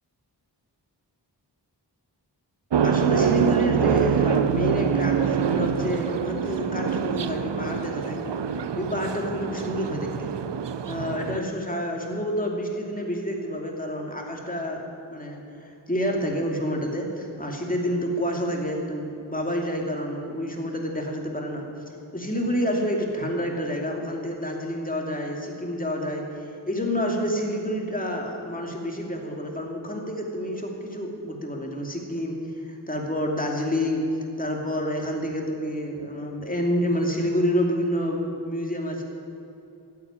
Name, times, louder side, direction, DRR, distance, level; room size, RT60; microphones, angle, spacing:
sound 1, 2.7-11.4, right 7 dB, 80° right, 0.7 m, -25 dB
voice 1, 2.8-8.2 8.7-10.3 10.9-14.8 15.1-21.7 22.1-32.4 32.7-34.0 34.4-39.0, equal, 20° left, 0 dB, 2.7 m, -28 dB
15.0 x 8.6 x 9.6 m, 2.8 s
wide cardioid pair, 75°, 42 cm